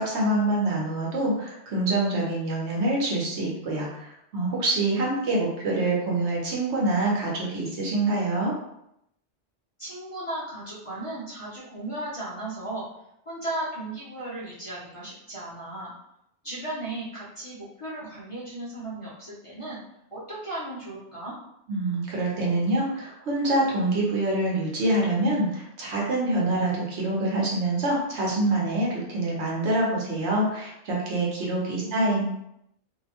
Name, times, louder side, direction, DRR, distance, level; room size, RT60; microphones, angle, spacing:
voice 1, 0.0-8.5 21.7-32.2, right 2 dB, 70° right, -3 dB, 1.1 m, -25 dB
voice 2, 9.8-12.9 13.3-15.9 16.4-19.8 20.1-21.3 31.7-32.2, right 1 dB, 35° left, -10 dB, 0.6 m, -36 dB
2.7 x 2.1 x 2.8 m, 0.79 s
omnidirectional pair, 1.2 m